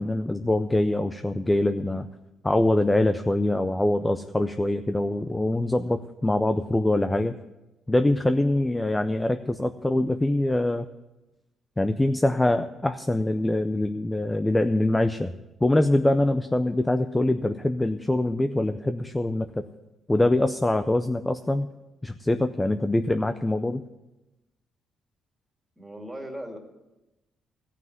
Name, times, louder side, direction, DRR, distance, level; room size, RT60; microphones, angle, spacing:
voice 1, 0.0-2.1 2.4-7.4 7.9-10.9 11.8-15.3 15.6-19.6 20.1-21.7 22.0-23.8, left 1 dB, 15° left, 9 dB, 0.5 m, -24 dB
voice 2, 25.8-26.6, equal, 5° right, 2 dB, 2.4 m, -37 dB
14.5 x 5.9 x 9.3 m, 1.0 s
cardioid pair, 90°, 0 cm